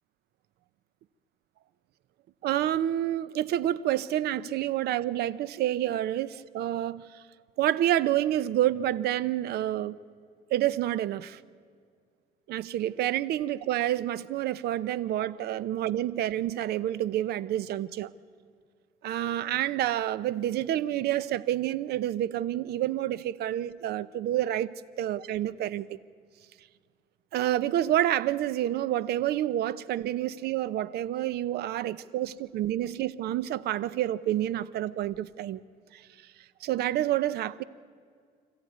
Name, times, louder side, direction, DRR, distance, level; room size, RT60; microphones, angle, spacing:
voice 1, 2.4-7.2 7.6-10.0 10.5-11.4 12.5-18.1 19.0-26.0 27.3-35.6 35.9-36.1 36.6-37.6, right 12 dB, 70° right, 18 dB, 0.7 m, -28 dB
25.5 x 14.5 x 9.4 m, 2.1 s
cardioid pair, 110°, 17 cm